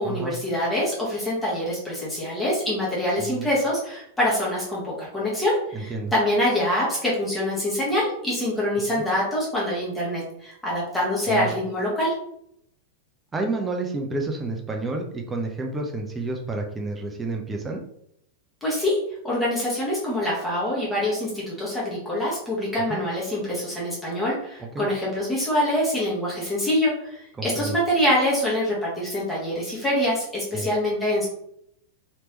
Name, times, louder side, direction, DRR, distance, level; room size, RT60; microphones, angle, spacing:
voice 1, 0.0-12.1 18.6-19.0 19.2-31.3, left 1 dB, 10° left, -6 dB, 1.1 m, -25 dB
voice 2, 5.7-6.1 11.3-11.5 13.3-17.8 22.9-23.0 24.7-24.8 27.3-27.8 30.5-30.7, right 3 dB, 15° right, 2 dB, 0.5 m, -30 dB
3.2 x 2.9 x 2.9 m, 0.73 s
figure-of-eight pair, 95°, 0 cm